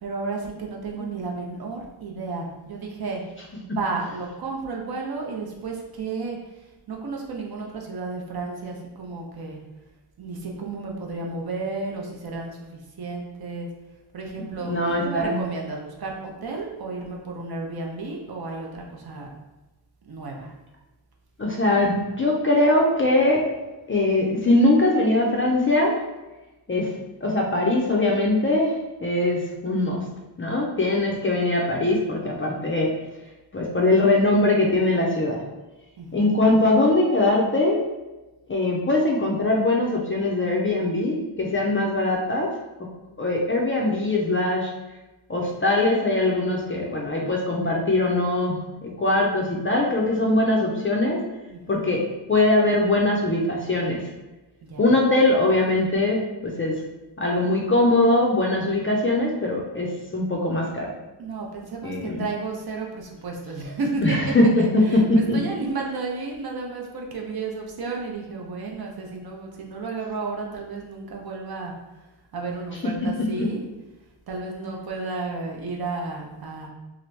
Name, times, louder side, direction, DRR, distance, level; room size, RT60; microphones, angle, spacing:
voice 1, 0.0-3.2 3.6-6.4 6.9-9.6 10.2-13.7 14.1-19.3 20.1-20.5 36.0-36.3 51.5-51.9 54.7-54.9 61.2-71.7 72.3-73.7 74.3-76.7, right 3 dB, 50° right, 0 dB, 0.6 m, -32 dB
voice 2, 14.6-15.4 21.4-23.5 23.9-26.0 26.7-26.9 27.2-30.0 30.4-32.9 33.5-35.4 36.1-37.8 38.5-42.5 43.2-44.7 45.3-51.2 51.7-52.0 52.3-54.0 54.8-56.7 57.2-60.9 61.8-62.2 64.0-65.0 65.3-65.4 73.4-73.5, left 2 dB, 30° left, -2 dB, 0.4 m, -21 dB
2.9 x 2.5 x 3.2 m, 1.1 s
wide cardioid pair, 130°, 47 cm